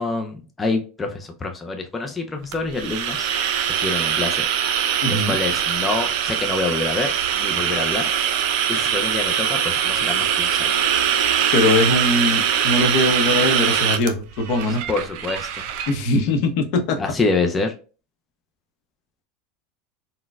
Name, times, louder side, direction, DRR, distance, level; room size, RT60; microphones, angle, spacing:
voice 1, 0.0-3.3 3.8-4.4 5.1-8.0 8.7-10.8 14.9-15.6 17.0-17.7, left 3 dB, 15° left, 4 dB, 0.4 m, -26 dB
sound 1, 2.5-15.9, right 9 dB, 65° right, 0.5 m, -22 dB
voice 2, 5.0-5.4 11.5-14.8 15.9-17.0, left 2 dB, 60° left, 5 dB, 0.7 m, -21 dB
4.0 x 2.1 x 2.2 m, 0.34 s
supercardioid pair, 130°, 0 cm